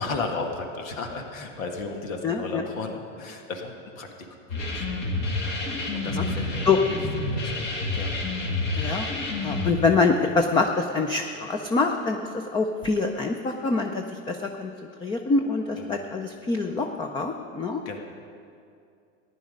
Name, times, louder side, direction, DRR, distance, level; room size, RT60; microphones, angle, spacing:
voice 1, 0.0-4.1 4.5-4.9 5.9-7.7 7.9-8.1 15.8-16.0 17.9-18.0, left 3 dB, 85° left, 3 dB, 1.8 m, -34 dB
voice 2, 2.2-2.6 6.2-6.3 6.7-6.8 8.7-9.1 9.4-14.7 15.0-17.8, left 4 dB, 15° left, 4 dB, 0.4 m, -25 dB
sound 1, 4.5-9.7, left 2 dB, 50° left, 2.9 m, -29 dB
15.0 x 10.5 x 5.2 m, 2.5 s
supercardioid pair, 125°, 39 cm